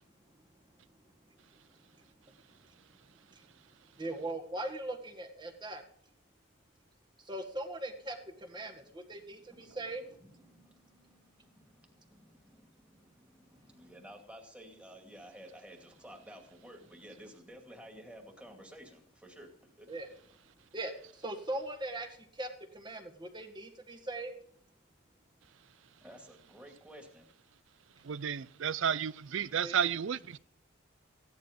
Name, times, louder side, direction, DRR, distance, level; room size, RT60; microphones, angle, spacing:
voice 1, 4.0-5.8 7.2-10.0 19.9-20.1 20.7-24.3 29.6-29.7, right 1 dB, 20° right, 1.7 m, -40 dB
voice 2, 9.5-19.9 26.0-27.3, equal, 5° right, 2.4 m, -53 dB
voice 3, 28.0-30.4, right 8 dB, 65° right, 0.5 m, -32 dB
16.0 x 11.0 x 5.3 m
head